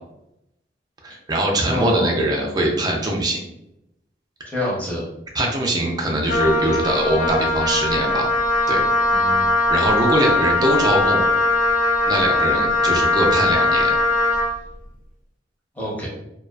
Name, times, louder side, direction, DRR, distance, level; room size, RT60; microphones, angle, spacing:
voice 1, 1.0-3.4 5.3-8.3 8.7-8.8 9.7-11.2 12.0-14.0, right 1 dB, 20° right, 0 dB, 0.4 m, -22 dB
voice 2, 1.7-2.2 4.4-5.1 9.1-9.4 15.7-16.1, left 1 dB, 10° left, -5 dB, 0.7 m, -26 dB
Wind instrument woodwind instrument, 6.3-14.6, left 2 dB, 45° left, 0.4 m, -20 dB
2.4 x 2.3 x 2.2 m, 0.85 s
head